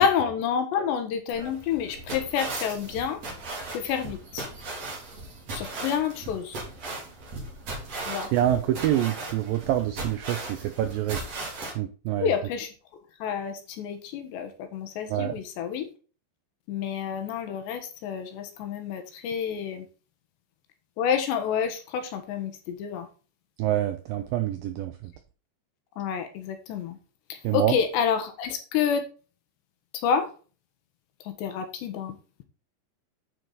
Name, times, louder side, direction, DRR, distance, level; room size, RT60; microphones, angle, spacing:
voice 1, 0.0-3.2 3.7-4.5 5.5-6.6 8.1-8.3 12.2-12.7 13.2-15.9 16.7-19.9 21.0-23.1 26.0-27.0 27.3-29.0 30.0-30.3 31.3-32.2, left 7 dB, 80° left, 7 dB, 3.5 m, -28 dB
sound 1, 1.3-11.7, right 2 dB, 40° right, 3.8 m, -37 dB
voice 2, 8.3-11.2 11.8-12.3 15.1-15.4 23.6-25.1 27.4-27.8, right 12 dB, 85° right, 8 dB, 2.0 m, -26 dB
9.3 x 6.2 x 4.0 m, 0.36 s
omnidirectional pair, 5.0 m